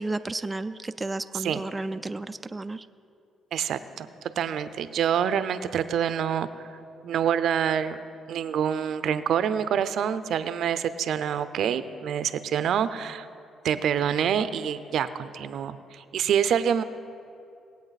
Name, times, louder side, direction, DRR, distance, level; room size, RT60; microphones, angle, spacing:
voice 1, 0.0-2.9, right 2 dB, 20° right, 9 dB, 0.3 m, -32 dB
voice 2, 3.5-4.1 4.4-6.7 7.0-8.0 8.3-13.3 13.6-16.8, right 8 dB, 70° right, 13 dB, 0.5 m, -26 dB
19.5 x 8.4 x 4.1 m, 2.5 s
cardioid pair, 90°, 0 cm